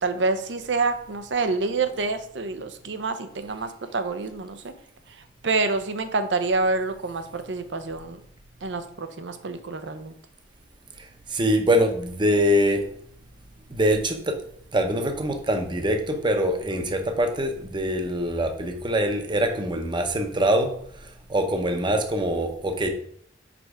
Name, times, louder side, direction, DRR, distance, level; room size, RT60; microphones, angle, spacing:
voice 1, 0.0-4.7 5.4-8.2 8.6-10.1, right 3 dB, 75° right, 9 dB, 0.7 m, -27 dB
voice 2, 11.3-12.8 13.7-14.3 14.7-20.7 21.3-22.9, equal, 25° right, 5 dB, 0.7 m, -23 dB
5.0 x 4.5 x 4.9 m, 0.65 s
head